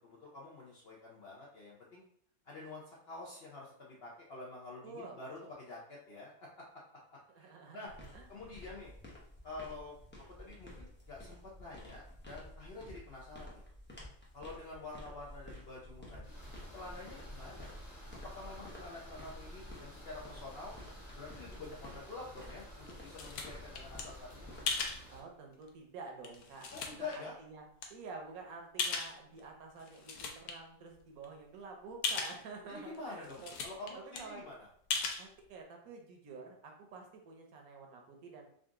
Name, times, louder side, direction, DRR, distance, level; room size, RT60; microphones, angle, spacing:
voice 1, 0.0-2.0 2.4-6.6 7.1-7.9 8.3-8.9 9.4-9.9 10.4-13.6 14.3-16.4 16.7-17.7 18.2-20.7 21.2-24.5 26.7-27.4 32.7-34.7, left 3 dB, 55° left, -4 dB, 0.7 m, -48 dB
voice 2, 4.8-5.2 7.3-8.3 25.1-34.4 35.2-38.4, right 4 dB, 70° right, 2 dB, 1.1 m, -49 dB
sound 1, 7.9-25.0, left 1 dB, 15° left, 0.4 m, -51 dB
sound 2, 16.2-25.2, equal, 30° left, 1.0 m, -55 dB
sound 3, 22.5-24.0 24.7-25.0 25.7-25.8 26.2-27.2 27.8-27.9 28.8-29.4 29.8-30.5 30.9-31.0 31.2-31.3 32.0-32.4 32.9-33.0 33.2-33.9 34.1-34.2 34.9-35.2, left 4 dB, 80° left, 1.1 m, -37 dB
3.8 x 2.4 x 3.6 m, 0.64 s
omnidirectional pair, 1.6 m